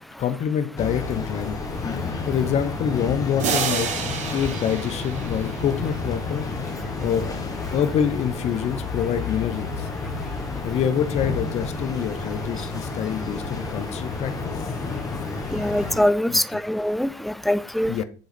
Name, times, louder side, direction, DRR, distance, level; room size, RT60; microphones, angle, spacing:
voice 1, 0.2-1.6 1.9-3.9 4.3-6.5 7.0-7.3 7.7-9.9 10.6-14.3 16.3-16.6 17.8-18.0, left 8 dB, 45° left, 11 dB, 0.8 m, -26 dB
sound 1, 0.8-16.0, left 3 dB, 20° left, 1.5 m, -30 dB
sound 2, 3.4-6.1, right 6 dB, 50° right, 1.6 m, -29 dB
voice 2, 15.5-18.0, left 1 dB, ahead, 15 dB, 0.4 m, -23 dB
7.9 x 3.9 x 5.1 m, 0.39 s
supercardioid pair, 100°, 16 cm